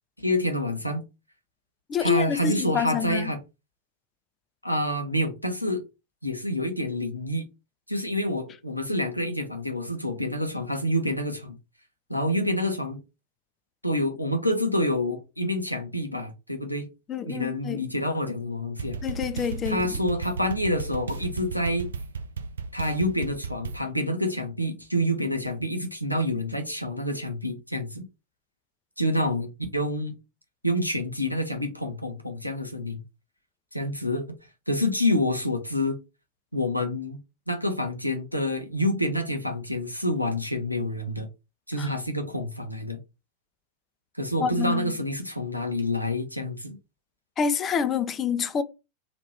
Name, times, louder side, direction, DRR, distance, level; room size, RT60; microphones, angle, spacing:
voice 1, 0.2-1.0 2.0-3.4 4.6-5.8 6.2-7.4 7.9-11.6 12.1-13.0 13.8-16.9 17.3-19.0 19.6-21.9 22.7-28.0 29.0-30.1 30.6-33.0 33.7-34.2 34.7-36.0 36.5-37.2 37.5-41.3 41.7-43.0 44.2-46.8, left 1 dB, 90° left, 0.7 m, -27 dB
voice 2, 1.9-3.3 17.1-17.9 19.0-19.8 41.8-41.9 44.4-44.9 47.4-48.6, left 7 dB, 25° left, 0.4 m, -27 dB
sound 1, 18.8-23.8, right 5 dB, 70° right, 0.4 m, -34 dB
2.9 x 2.5 x 3.2 m
figure-of-eight pair, 90°, 0 cm